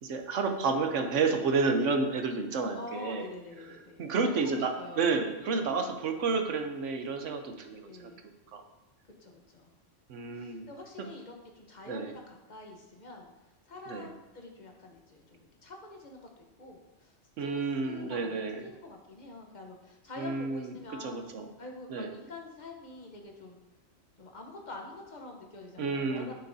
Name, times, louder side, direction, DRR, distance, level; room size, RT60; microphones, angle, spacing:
voice 1, 0.0-3.3 4.0-4.7 5.0-8.1 8.5-8.6 10.1-10.7 11.9-12.1 13.9-14.1 17.4-18.6 20.2-20.7 21.0-21.5 21.9-22.1 25.8-26.3, right 4 dB, 70° right, 5 dB, 1.1 m, -30 dB
voice 2, 2.8-5.7 7.8-8.2 9.0-9.8 10.3-13.3 13.7-21.3 21.6-23.6 24.2-26.3, left 2 dB, 35° left, 1 dB, 1.1 m, -46 dB
9.1 x 6.7 x 2.7 m, 1.0 s
omnidirectional pair, 1.3 m